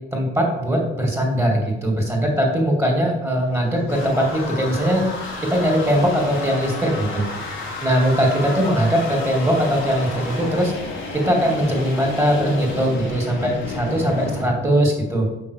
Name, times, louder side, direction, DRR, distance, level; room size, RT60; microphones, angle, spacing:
voice 1, 0.1-5.0 5.5-7.2 7.8-10.7 11.1-15.3, equal, 15° right, 0 dB, 2.7 m, -20 dB
sound 1, 3.3-14.5, left 2 dB, 80° left, 2.7 m, -31 dB
6.1 x 6.0 x 6.5 m, 1.0 s
cardioid pair, 90°, 20 cm